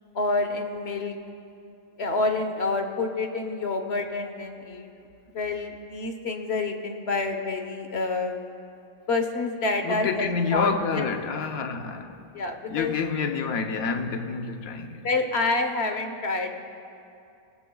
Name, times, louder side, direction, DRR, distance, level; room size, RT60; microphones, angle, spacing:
voice 1, 0.1-1.2 2.0-4.9 5.3-8.4 9.1-11.1 12.3-12.9 15.0-16.5, left 3 dB, 50° left, 1.2 m, -28 dB
voice 2, 9.8-12.2 12.7-15.1, left 5 dB, 80° left, 1.3 m, -28 dB
25.5 x 18.5 x 2.3 m
omnidirectional pair, 1.5 m